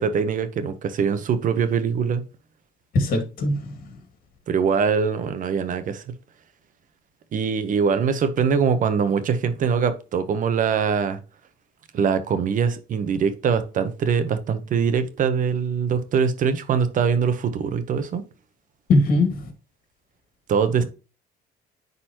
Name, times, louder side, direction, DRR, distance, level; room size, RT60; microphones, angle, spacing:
voice 1, 0.0-2.2 4.5-6.0 7.3-11.2 11.9-18.2 20.5-20.8, right 6 dB, 50° right, 1.1 m, -23 dB
voice 2, 2.9-3.9 18.9-19.5, left 2 dB, 60° left, 2.4 m, -21 dB
10.0 x 4.2 x 3.0 m
cardioid pair, 110°, 17 cm